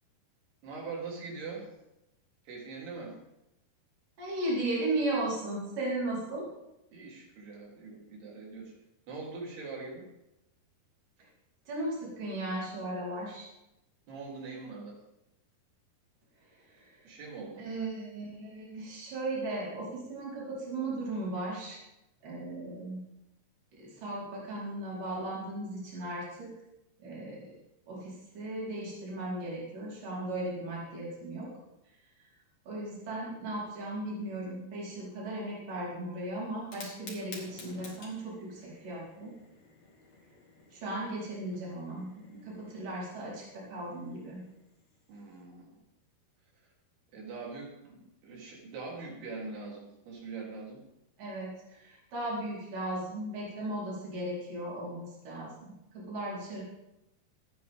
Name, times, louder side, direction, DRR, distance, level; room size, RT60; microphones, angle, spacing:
voice 1, 0.6-1.7 2.5-3.1 6.9-8.7 9.1-10.1 14.1-15.0 17.1-17.6 45.1-45.8 47.1-50.8, right 4 dB, 85° right, -3 dB, 5.4 m, -42 dB
voice 2, 4.2-6.5 11.7-13.5 16.5-17.0 17.6-21.8 22.2-23.0 23.7-26.5 27.0-27.5 27.9-31.5 32.7-39.3 40.7-44.4 51.2-56.6, right 1 dB, 60° right, -6 dB, 5.9 m, -36 dB
Fire, 36.6-45.4, left 3 dB, 45° left, 3.4 m, -53 dB
26.0 x 9.1 x 3.7 m, 0.88 s
omnidirectional pair, 4.5 m